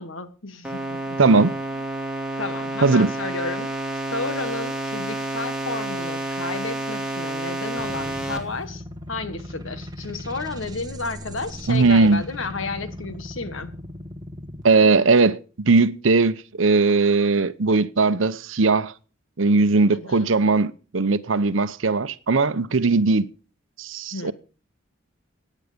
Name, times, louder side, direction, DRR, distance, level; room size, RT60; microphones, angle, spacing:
voice 1, 0.0-1.2 2.4-3.7 4.1-8.8 9.1-13.7 19.9-20.3 24.1-24.3, left 3 dB, 80° left, 1.6 m, -32 dB
sound 1, 0.6-8.4, right 1 dB, 5° right, 2.7 m, -29 dB
voice 2, 1.2-1.5 2.8-3.1 11.7-12.2 14.6-18.9 19.4-23.3 23.8-24.3, right 3 dB, 80° right, 0.8 m, -19 dB
sound 2, 7.8-14.6, left 1 dB, 20° right, 1.4 m, -38 dB
16.5 x 9.5 x 5.2 m
head